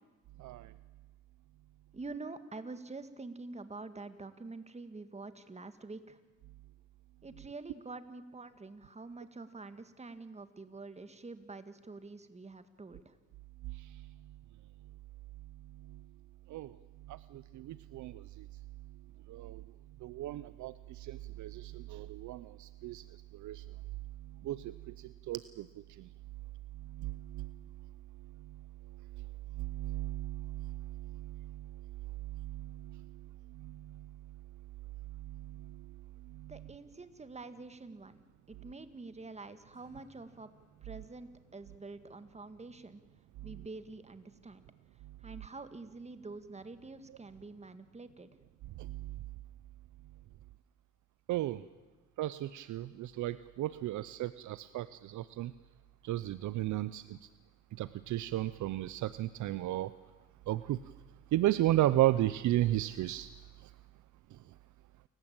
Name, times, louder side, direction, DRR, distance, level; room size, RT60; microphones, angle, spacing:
voice 1, 0.4-0.7 13.6-14.0 15.9-16.0 16.5-16.8 17.1-18.5 19.3-19.6 20.0-23.0 23.3-23.6 24.4-25.7 26.0-26.1 26.8-27.6 29.6-31.8 32.2-33.2 33.5-34.1 35.2-35.9 36.3-36.7 43.4-43.7 47.1-47.2 48.8-49.2 51.3-51.6 52.2-55.5 56.0-57.2 57.8-59.9 60.5-60.8 61.3-63.3 63.6-63.7, right 14 dB, 75° right, 16 dB, 0.7 m, -35 dB
voice 2, 1.9-6.2 7.2-13.1 36.5-38.2 38.5-40.5 40.8-43.0 43.4-44.6 45.2-48.3, right 3 dB, 20° right, 11 dB, 1.8 m, -47 dB
Acoustic guitar / Strum, 39.7-43.0, left 3 dB, 50° left, 7.9 m, -69 dB
28.5 x 15.5 x 8.9 m, 1.2 s
cardioid pair, 90°, 30 cm